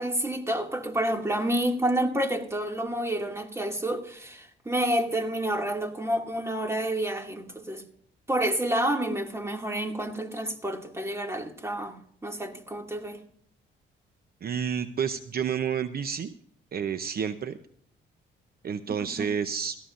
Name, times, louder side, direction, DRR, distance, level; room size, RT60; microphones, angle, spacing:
voice 1, 0.0-7.8 8.3-13.2 18.9-19.3, right 1 dB, 15° right, 2.3 m, -29 dB
voice 2, 14.4-16.3 16.7-17.6 18.6-19.8, right 7 dB, 50° right, 0.8 m, -30 dB
17.5 x 15.0 x 2.6 m
cardioid pair, 90°, 20 cm